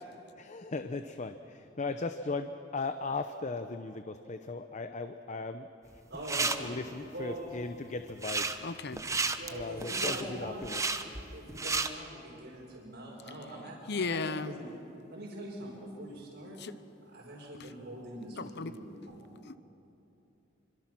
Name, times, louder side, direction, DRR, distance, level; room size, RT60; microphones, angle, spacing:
voice 1, 0.4-5.7 6.6-8.5 9.5-10.8, left 3 dB, 40° left, 8 dB, 0.7 m, -37 dB
sound 1, 6.0-6.6 8.1-8.6 8.9-11.9, right 4 dB, 15° right, 0.9 m, -32 dB
voice 2, 6.1-6.7 7.1-7.4 9.2-10.7 10.9-14.7 15.1-16.6 17.1-19.3, right 1 dB, 70° right, -7 dB, 5.2 m, -43 dB
voice 3, 8.6-9.0 13.9-14.5 16.6-16.7 18.4-18.7 19.4-19.6, left 4 dB, 60° left, 13 dB, 0.9 m, -35 dB
26.5 x 25.0 x 6.1 m, 3.0 s
head